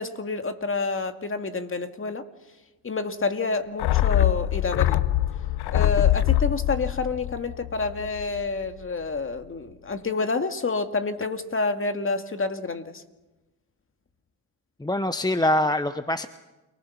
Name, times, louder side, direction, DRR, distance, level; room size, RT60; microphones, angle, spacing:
voice 1, 0.0-2.2 2.8-5.0 5.7-13.0, left 3 dB, 30° left, 7 dB, 2.1 m, -28 dB
sound 1, 3.8-8.4 8.7-8.8, left 14 dB, 60° left, 0.8 m, -23 dB
voice 2, 14.8-16.3, left 1 dB, 10° left, 11 dB, 1.0 m, -24 dB
29.0 x 20.0 x 5.9 m, 1.1 s
supercardioid pair, 65°, 43 cm